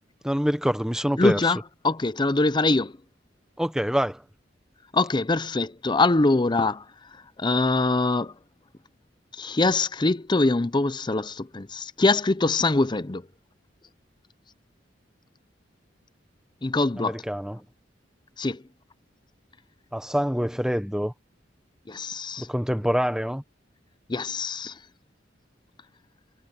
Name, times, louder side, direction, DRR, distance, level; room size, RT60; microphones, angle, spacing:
voice 1, 0.2-1.5 3.6-4.2 17.0-17.6 19.9-21.1 22.4-23.4, equal, 5° right, 1.2 m, -26 dB
voice 2, 1.2-1.6 1.8-3.0 4.9-6.8 7.4-8.3 9.4-13.2 16.6-17.2 18.4-18.6 21.9-22.5 24.1-24.7, left 3 dB, 25° left, 0.6 m, -23 dB
head